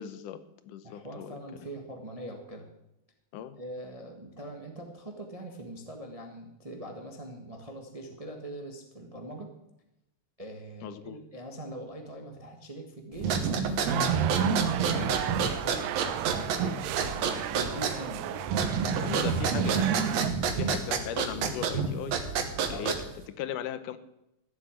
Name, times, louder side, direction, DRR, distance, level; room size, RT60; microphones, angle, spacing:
voice 1, 0.0-1.4 3.3-3.6 10.8-11.2 19.0-20.1 20.5-22.2 22.7-23.1 23.4-24.0, left 10 dB, 75° left, 13 dB, 2.3 m, -38 dB
voice 2, 0.8-2.7 3.5-9.5 10.4-16.5 17.0-18.5 18.9-19.8 22.7-23.0, right 1 dB, 35° right, 3 dB, 0.5 m, -42 dB
sound 1, 13.2-23.2, right 6 dB, 60° right, 2.2 m, -28 dB
sound 2, 13.9-20.3, right 13 dB, 85° right, 2.4 m, -35 dB
14.5 x 7.6 x 8.9 m, 0.85 s
omnidirectional pair, 3.8 m